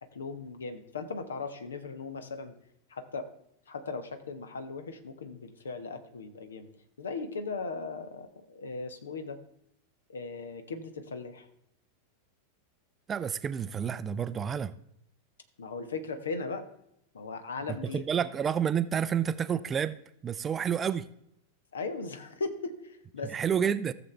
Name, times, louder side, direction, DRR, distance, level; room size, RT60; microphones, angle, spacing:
voice 1, 0.0-2.5 2.9-3.3 3.7-6.7 7.0-9.4 10.1-11.5 15.6-16.7 17.1-18.0 21.7-23.3, left 4 dB, 70° left, 9 dB, 1.1 m, -38 dB
voice 2, 13.1-14.7 17.9-20.0 20.2-21.1 23.3-23.9, right 8 dB, 20° right, 15 dB, 0.4 m, -29 dB
15.0 x 7.0 x 3.3 m, 0.78 s
figure-of-eight pair, 90°, 0 cm